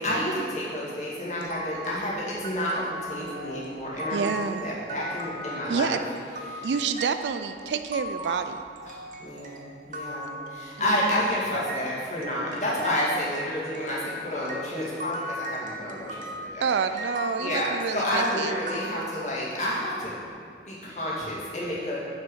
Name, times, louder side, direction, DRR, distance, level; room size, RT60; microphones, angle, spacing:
voice 1, 0.0-4.3 4.6-6.0 6.5-6.7 8.8-16.7 17.4-20.1 20.7-22.1, equal, 40° left, -7 dB, 2.2 m, -30 dB
sound 1, 1.4-11.9 12.2-19.6, equal, 45° right, 0.7 m, -38 dB
voice 2, 4.1-4.6 5.7-6.0 6.6-8.6 16.6-18.6, right 6 dB, 80° right, 9 dB, 0.4 m, -28 dB
7.4 x 6.1 x 5.5 m, 2.3 s
head